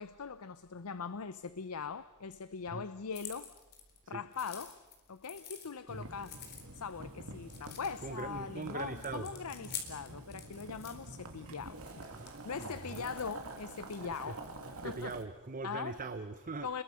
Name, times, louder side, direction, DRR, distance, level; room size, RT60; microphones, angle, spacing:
voice 1, 0.0-3.5 4.1-4.8 5.1-6.4 6.7-11.8 12.4-14.4 14.8-15.2 15.6-16.0 16.6-16.8, left 5 dB, 80° left, 0.7 m, -41 dB
sound 1, 3.1-4.0 4.3-5.7 6.2-6.9 7.4-8.3 8.7-11.0 11.9-14.7, left 7 dB, 50° left, 3.9 m, -48 dB
Boiling, 5.9-15.2, right 2 dB, 70° right, 2.5 m, -48 dB
voice 2, 8.0-9.3 12.1-13.1 14.0-14.3 14.8-16.7, right 3 dB, 40° right, 0.9 m, -41 dB
29.5 x 22.0 x 6.5 m
head